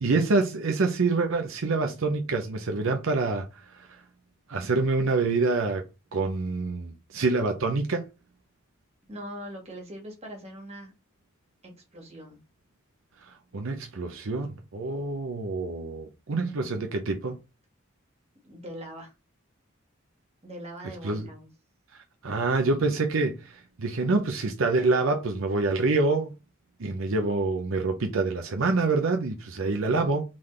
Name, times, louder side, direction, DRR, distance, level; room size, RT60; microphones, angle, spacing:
voice 1, 0.0-3.9 4.5-5.8 6.1-8.0 13.3-17.4 21.0-21.3 21.9-26.3 26.8-30.2, right 3 dB, 75° right, 0.6 m, -26 dB
voice 2, 9.1-10.9 11.6-12.4 16.4-16.8 18.4-19.1 20.4-21.5 29.6-30.2, equal, 30° right, 1.7 m, -42 dB
3.8 x 3.7 x 3.2 m
head